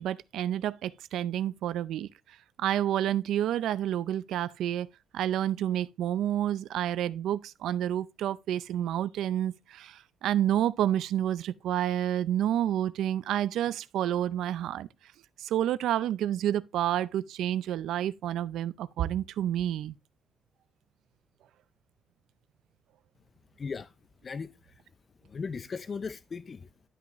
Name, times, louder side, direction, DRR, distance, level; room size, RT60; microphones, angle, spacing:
voice 1, 0.0-2.1 2.6-4.9 5.1-14.9 15.4-20.0, right 11 dB, 80° right, 0.4 m, -29 dB
voice 2, 23.6-23.9 24.2-24.8 25.2-26.7, left 5 dB, 40° left, 0.5 m, -37 dB
11.5 x 5.9 x 3.0 m
cardioid pair, 90°, 0 cm